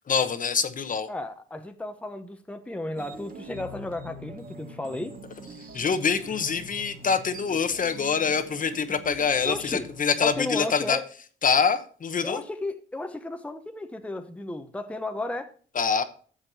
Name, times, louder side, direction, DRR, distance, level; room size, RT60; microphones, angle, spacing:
voice 1, 0.1-1.1 5.7-11.0 11.4-12.4 15.7-16.0, left 6 dB, 40° left, 1.0 m, -25 dB
voice 2, 1.1-5.1 9.5-9.9 10.2-11.1 12.2-15.5, left 2 dB, 5° left, 0.9 m, -34 dB
sound 1, 2.9-10.4, right 1 dB, 45° right, 2.1 m, -44 dB
13.5 x 7.4 x 2.7 m
cardioid pair, 90°, 20 cm